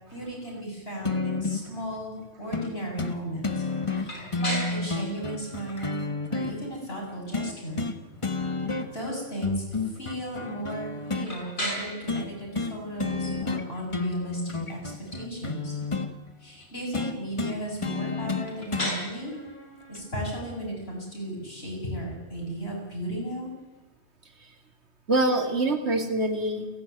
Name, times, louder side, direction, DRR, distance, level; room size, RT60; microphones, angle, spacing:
voice 1, 0.1-6.0 6.3-7.8 8.9-15.8 16.4-19.4 19.9-23.5, right 1 dB, 65° left, -2 dB, 8.3 m, -35 dB
sound 1, 1.0-1.7 2.5-2.7 3.0-3.2 3.4-6.5 7.3-8.0 8.2-9.1 9.4-11.3 12.1-12.3 12.5-12.7 13.0-13.6 13.9-16.1 16.9-18.9 19.9-20.0, left 3 dB, 30° left, 1.4 m, -30 dB
voice 2, 3.8-4.4 8.2-8.7 24.4-24.5 25.1-26.7, right 2 dB, 85° right, 6 dB, 2.8 m, -27 dB
sound 2, 4.0-23.8, equal, 50° left, 6.4 m, -41 dB
29.5 x 11.5 x 9.4 m, 1.1 s
omnidirectional pair, 1.1 m